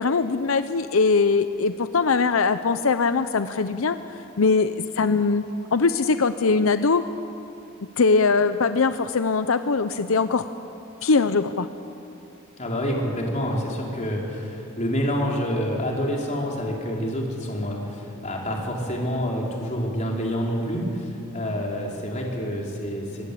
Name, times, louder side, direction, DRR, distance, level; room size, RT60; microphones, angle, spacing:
voice 1, 0.0-4.0 4.4-5.5 5.7-7.0 8.0-10.4 11.0-11.7, left 4 dB, 90° left, 11 dB, 0.7 m, -21 dB
voice 2, 12.6-23.3, equal, 35° left, -1 dB, 4.2 m, -27 dB
23.0 x 20.5 x 8.5 m, 2.7 s
head